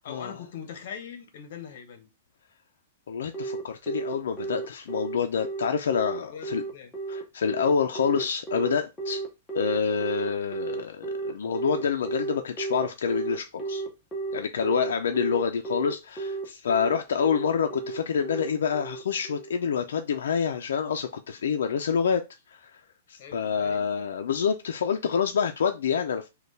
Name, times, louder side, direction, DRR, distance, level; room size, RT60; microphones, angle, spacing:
voice 1, 0.0-2.1 6.2-6.9 23.2-23.9, left 7 dB, 50° left, 0.9 m, -42 dB
voice 2, 3.1-6.6 7.1-9.2 9.5-13.8 14.3-22.2 22.5-22.6 23.1-26.3, left 6 dB, 85° left, 0.4 m, -27 dB
Telephone, 3.3-19.5, right 4 dB, 10° left, 0.8 m, -33 dB
4.3 x 2.3 x 3.3 m
hypercardioid pair, 170°, 0 cm